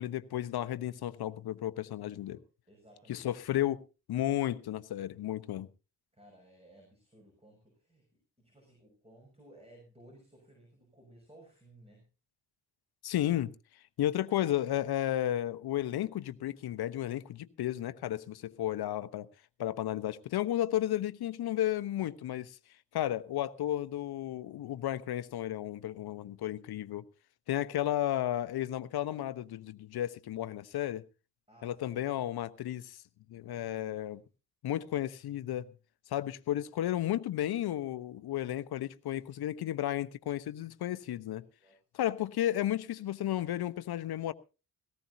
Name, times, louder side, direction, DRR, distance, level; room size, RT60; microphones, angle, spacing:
voice 1, 0.0-2.4 3.1-3.8 4.1-5.7 13.0-13.5 14.0-19.3 19.6-22.6 22.9-27.0 27.5-31.0 31.6-33.0 33.3-34.2 34.6-35.7 36.1-41.4 41.9-44.3, left 12 dB, 55° left, 1.0 m, -33 dB
voice 2, 2.3-3.4 6.1-8.1 8.4-12.1 31.5-32.3 33.3-34.2 39.2-39.4 41.4-41.8, right 1 dB, 15° right, 6.4 m, -59 dB
18.0 x 16.0 x 2.8 m
hypercardioid pair, 45°, 47 cm